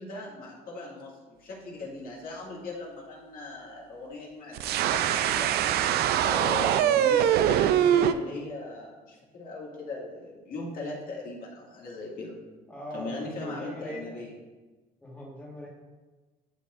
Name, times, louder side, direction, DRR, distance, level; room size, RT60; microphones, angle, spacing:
voice 1, 0.0-5.5 6.2-12.4 12.9-14.3, left 2 dB, 60° left, -4 dB, 2.0 m, -39 dB
sound 1, 4.5-8.1, right 10 dB, 70° right, 0.4 m, -23 dB
voice 2, 12.7-14.2 15.0-15.7, equal, 10° left, -4 dB, 1.6 m, -41 dB
11.5 x 4.3 x 2.5 m, 1.3 s
cardioid pair, 110°, 17 cm